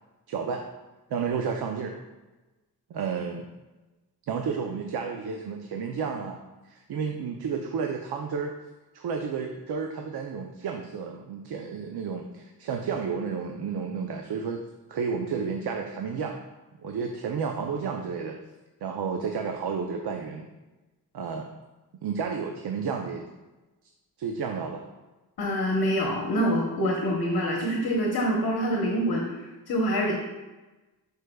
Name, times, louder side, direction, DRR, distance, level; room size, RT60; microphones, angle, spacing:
voice 1, 0.3-0.6 1.1-2.0 2.9-3.5 4.3-8.5 8.9-14.6 14.9-16.4 16.8-18.4 18.8-20.5 21.1-21.5 22.0-23.3 24.2-24.9, right 6 dB, 90° right, 3 dB, 0.7 m, -31 dB
voice 2, 25.4-30.1, equal, 75° left, -2 dB, 1.2 m, -26 dB
11.0 x 4.8 x 2.3 m, 1.1 s
wide cardioid pair, 155°, 37 cm